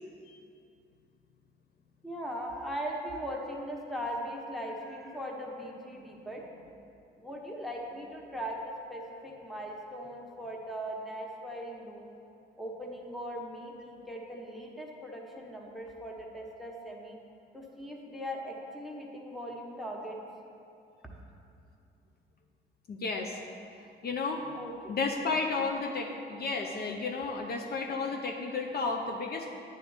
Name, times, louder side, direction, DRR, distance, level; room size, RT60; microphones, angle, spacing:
voice 1, 2.0-6.7 7.2-12.1 12.6-17.2 17.5-20.2 24.5-25.0, equal, ahead, -1 dB, 1.3 m, -39 dB
voice 2, 22.9-23.4 24.0-24.5 24.9-29.5, left 4 dB, 50° left, 2 dB, 0.7 m, -32 dB
9.2 x 3.9 x 7.1 m, 2.6 s
cardioid pair, 90°, 20 cm